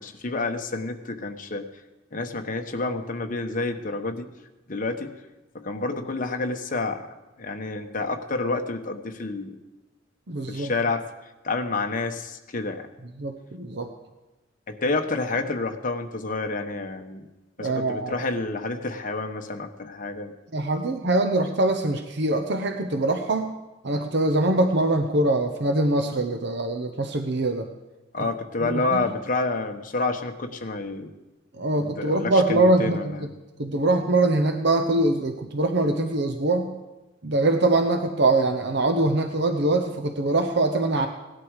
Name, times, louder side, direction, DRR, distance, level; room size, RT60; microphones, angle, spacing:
voice 1, 0.0-1.7 2.1-4.3 4.7-5.1 5.5-7.1 7.4-9.6 10.5-11.1 11.4-12.9 14.7-17.3 17.6-20.3 28.1-31.1 31.7-33.2, left 3 dB, 45° left, 4 dB, 1.1 m, -29 dB
voice 2, 10.3-10.7 13.2-13.9 17.6-18.3 20.5-23.5 23.8-27.7 28.2-28.3 28.6-29.0 31.6-33.3 33.6-36.7 37.2-41.1, right 2 dB, 60° right, 5 dB, 0.9 m, -23 dB
17.5 x 12.0 x 4.9 m, 1.1 s
head